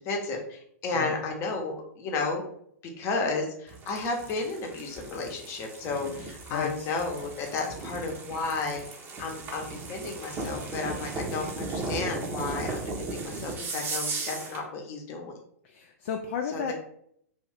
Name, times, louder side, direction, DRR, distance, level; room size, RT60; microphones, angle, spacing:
voice 1, 0.0-2.4 3.0-8.8 9.2-15.3 16.5-16.7, left 3 dB, 30° left, 2 dB, 0.8 m, -32 dB
sound 1, 3.7-14.7, right 3 dB, 25° right, 0.7 m, -36 dB
voice 2, 6.5-6.9 15.6-16.7, left 7 dB, 50° left, 3 dB, 0.4 m, -33 dB
2.7 x 2.5 x 3.4 m, 0.68 s
figure-of-eight pair, 110°, 8 cm